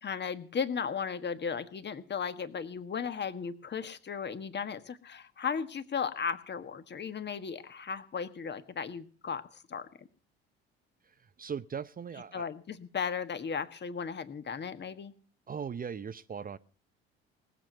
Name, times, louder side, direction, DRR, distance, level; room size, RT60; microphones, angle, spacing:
voice 1, 0.0-10.1 12.3-15.1, left 6 dB, 35° left, 1.5 m, -36 dB
voice 2, 11.0-12.5 15.5-16.6, right 7 dB, 30° right, 0.7 m, -39 dB
19.0 x 7.5 x 8.1 m
hypercardioid pair, 60°, 31 cm